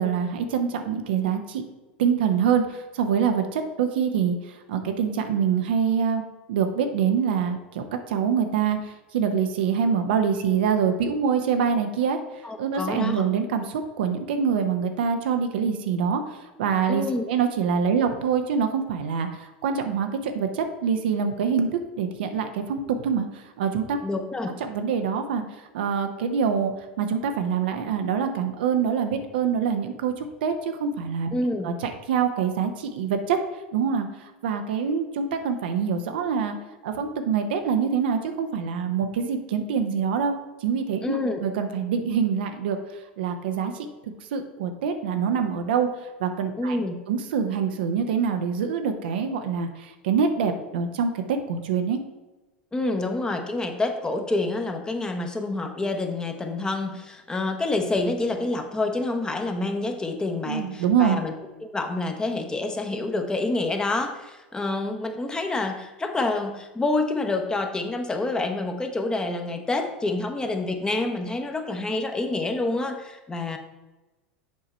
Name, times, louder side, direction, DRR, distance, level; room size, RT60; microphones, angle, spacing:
voice 1, 0.0-1.6 2.0-6.2 6.5-21.7 22.0-24.0 24.6-25.4 25.7-31.3 31.6-33.4 33.7-36.6 36.8-40.4 40.6-42.8 43.2-43.9 44.3-45.9 46.2-46.8 47.1-52.0 60.4-61.2, right 6 dB, 65° right, 6 dB, 0.8 m, -25 dB
voice 2, 12.4-13.2 16.9-17.2 24.0-24.5 31.3-31.7 41.0-41.4 46.6-47.0 52.7-61.3 61.6-73.6, left 2 dB, 15° left, 4 dB, 1.0 m, -27 dB
7.5 x 4.8 x 4.3 m, 1.1 s
hypercardioid pair, 85°, 6 cm